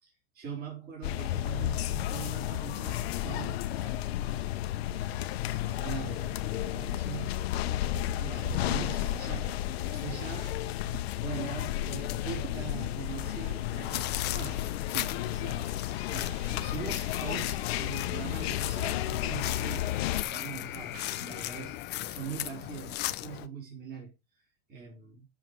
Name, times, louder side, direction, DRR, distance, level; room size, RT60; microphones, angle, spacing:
voice 1, 0.0-4.5 4.9-7.3 8.2-9.5 9.8-10.6 11.1-14.6 15.3-24.1 24.7-25.3, right 7 dB, 30° right, 3.8 m, -42 dB
sound 1, 1.0-20.2, left 13 dB, 75° left, 0.9 m, -32 dB
sound 2, 7.9-8.2 8.4-8.6 8.9-9.0 9.4-9.5 9.9-10.1 10.4-10.5 10.9-11.6 11.9-12.0 12.4-13.1 13.4-13.6 13.9-16.6 16.9-17.8 18.4-18.5 19.4-20.4 20.9-21.3, right 8 dB, 80° right, 2.1 m, -49 dB
sound 3, 13.8-23.5, left 16 dB, 35° left, 0.6 m, -37 dB
7.0 x 5.8 x 4.7 m
supercardioid pair, 135°, 31 cm